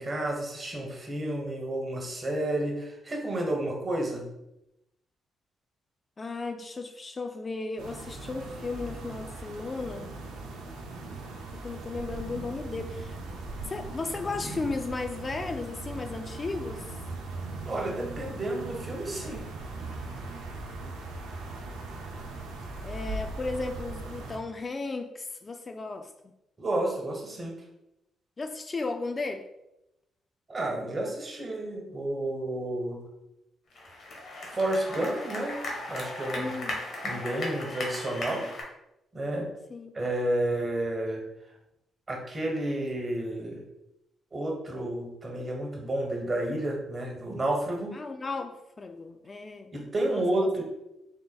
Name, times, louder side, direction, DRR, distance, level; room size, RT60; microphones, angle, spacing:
voice 1, 0.0-4.2 17.6-19.4 26.6-27.5 30.5-33.0 34.5-35.6 35.9-36.6 37.0-38.5 39.1-39.5 39.9-41.2 42.1-43.6 44.3-47.9 49.7-50.6, right 1 dB, 35° right, 1.2 m, -31 dB
voice 2, 6.2-10.1 11.5-13.2 13.7-16.9 22.8-26.1 28.4-29.5 36.3-36.9 39.7-39.9 47.9-49.7 50.1-50.2, left 3 dB, 35° left, 0.3 m, -35 dB
sound 1, 7.8-24.4, right 2 dB, 85° right, 0.5 m, -39 dB
sound 2, 33.7-38.6, left 1 dB, 60° left, 1.1 m, -36 dB
4.0 x 3.5 x 2.3 m
supercardioid pair, 60°, 0 cm